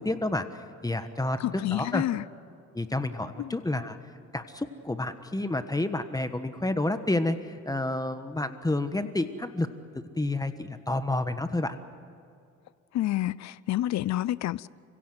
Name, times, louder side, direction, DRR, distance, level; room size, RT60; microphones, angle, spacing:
voice 1, 0.0-1.4 1.7-2.0 2.7-4.0 4.3-9.7 10.2-11.8, left 2 dB, 10° left, 1.3 m, -29 dB
voice 2, 1.4-2.3 3.4-3.6 12.9-14.7, left 14 dB, 65° left, 0.6 m, -29 dB
29.5 x 16.5 x 7.9 m
cardioid pair, 90°, 30 cm